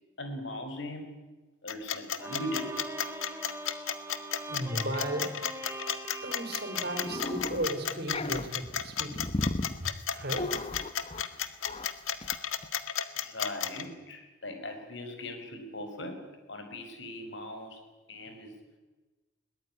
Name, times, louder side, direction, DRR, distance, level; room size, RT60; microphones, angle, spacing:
voice 1, 0.2-1.1 1.6-2.8 13.2-16.2 16.5-17.8 18.1-18.5, left 1 dB, 60° left, 6 dB, 5.1 m, -39 dB
sound 1, 1.7-13.8, left 9 dB, 85° left, 1.7 m, -32 dB
Bowed string instrument, 2.2-8.5, right 2 dB, 15° right, 2.1 m, -42 dB
voice 2, 4.5-5.3 6.2-9.3 9.8-10.5, right 1 dB, 50° right, 6 dB, 4.6 m, -35 dB
sound 2, 7.0-7.7 8.0-11.4 11.6-11.9 12.2-12.4 12.6-12.7, left 1 dB, 30° left, 1.1 m, -35 dB
21.5 x 20.0 x 10.0 m, 1.2 s
head